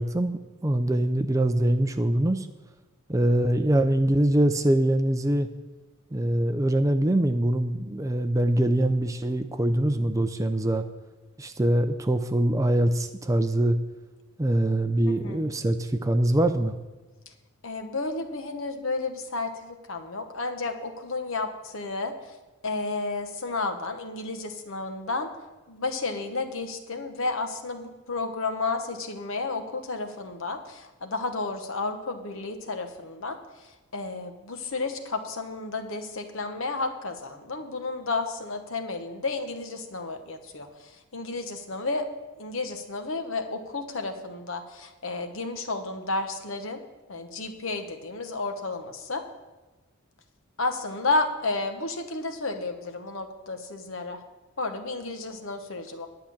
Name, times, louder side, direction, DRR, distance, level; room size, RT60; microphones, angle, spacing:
voice 1, 0.0-2.5 3.1-5.5 6.1-10.9 11.4-13.8 14.4-16.8, right 1 dB, 15° right, 8 dB, 0.4 m, -23 dB
voice 2, 15.1-15.5 17.6-22.4 22.6-25.3 25.7-42.1 42.4-46.8 47.1-49.2 50.6-54.2 54.6-56.1, left 3 dB, 60° left, 6 dB, 1.1 m, -32 dB
10.5 x 5.8 x 8.7 m, 1.2 s
head